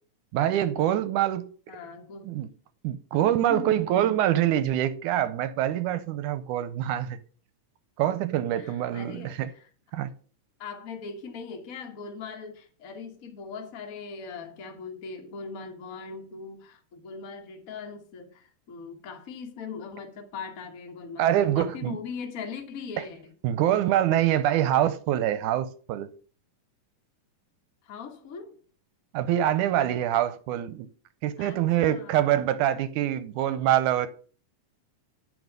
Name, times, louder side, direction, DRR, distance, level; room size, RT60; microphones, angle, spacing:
voice 1, 0.3-1.8 2.2-2.5 2.8-7.2 8.0-9.5 9.9-10.1 21.2-22.0 23.4-26.1 29.1-30.9 31.2-34.1, right 12 dB, 80° right, 1.9 m, -25 dB
voice 2, 1.7-2.4 3.5-3.8 8.6-9.7 10.6-23.2 27.8-28.6 31.4-32.3, left 5 dB, 85° left, 0.7 m, -40 dB
9.6 x 5.4 x 6.6 m
omnidirectional pair, 3.9 m